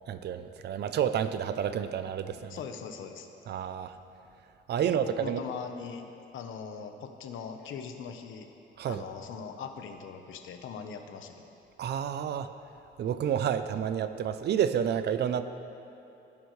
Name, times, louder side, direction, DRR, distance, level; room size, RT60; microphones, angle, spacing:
voice 1, 0.0-2.6 3.5-3.9 4.7-5.4 8.8-9.0 11.8-12.5 13.0-15.4, right 9 dB, 60° right, 11 dB, 0.5 m, -30 dB
voice 2, 2.5-3.3 4.8-6.1 6.3-8.5 8.9-11.3, left 6 dB, 90° left, 6 dB, 1.0 m, -41 dB
18.5 x 10.5 x 3.2 m, 2.8 s
cardioid pair, 160°, 20 cm